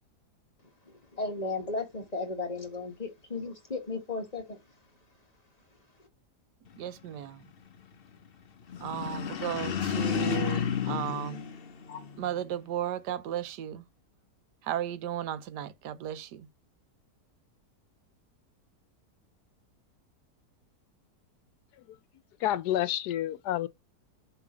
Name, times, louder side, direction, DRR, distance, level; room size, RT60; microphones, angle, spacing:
voice 1, 0.9-4.6, left 3 dB, 25° left, 1.6 m, -35 dB
voice 2, 6.8-7.4 8.8-11.4 12.2-13.8 14.6-16.5, right 10 dB, 90° right, 1.3 m, -35 dB
sound 1, 8.7-12.3, left 7 dB, 50° left, 0.7 m, -31 dB
voice 3, 22.4-23.7, left 12 dB, 85° left, 1.2 m, -29 dB
7.1 x 3.5 x 6.1 m
omnidirectional pair, 1.7 m